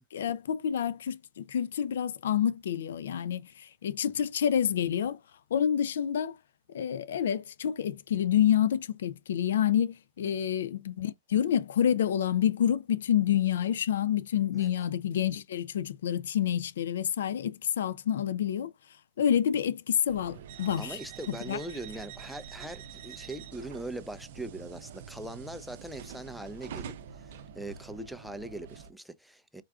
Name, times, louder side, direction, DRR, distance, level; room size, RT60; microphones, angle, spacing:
voice 1, 0.1-5.2 5.5-6.4 6.7-18.7 19.2-21.0 21.3-21.6, left 9 dB, 85° left, 0.4 m, -28 dB
sound 1, 20.1-28.9, right 7 dB, 70° right, 0.5 m, -46 dB
voice 2, 20.8-26.9 27.5-29.6, right 1 dB, ahead, 0.4 m, -41 dB
4.5 x 2.4 x 2.3 m
hypercardioid pair, 125°, 0 cm